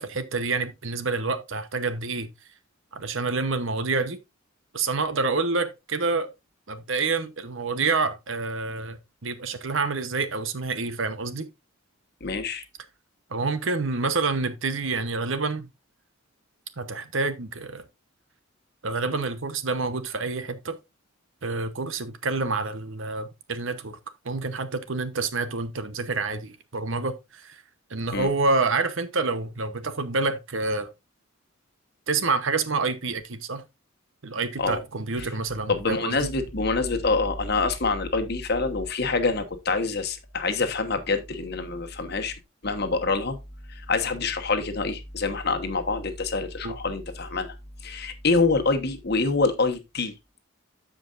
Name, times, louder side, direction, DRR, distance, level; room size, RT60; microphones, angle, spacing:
voice 1, 0.0-2.3 2.9-4.2 4.7-6.3 6.7-11.5 13.3-15.7 16.8-17.8 18.8-20.8 21.4-24.0 24.2-27.6 27.9-30.9 32.1-33.6 34.2-36.3 46.6-46.7, right 3 dB, 65° right, 0.9 m, -28 dB
voice 2, 12.2-12.6 28.1-28.3 34.6-34.8 35.2-35.3 35.7-42.3 42.6-43.4 43.7-47.5 47.8-50.1, left 3 dB, 50° left, 1.2 m, -26 dB
14.0 x 5.1 x 2.5 m
head